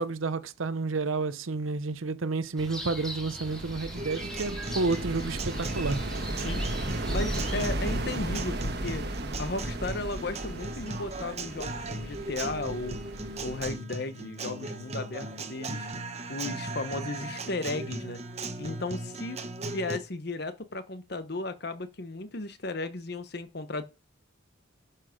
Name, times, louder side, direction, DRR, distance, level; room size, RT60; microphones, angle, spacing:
voice 1, 0.0-6.0, right 3 dB, 80° right, 0.8 m, -30 dB
sound 1, 2.6-7.6, equal, 5° left, 2.7 m, -40 dB
sound 2, 3.5-13.7, right 1 dB, 55° right, 1.4 m, -35 dB
Guitar, 4.0-20.0, right 2 dB, 30° right, 1.0 m, -38 dB
voice 2, 7.1-9.0 9.4-13.0 13.4-15.9 16.3-18.2 18.6-23.8, left 2 dB, 50° left, 1.0 m, -35 dB
11.0 x 5.8 x 5.1 m
head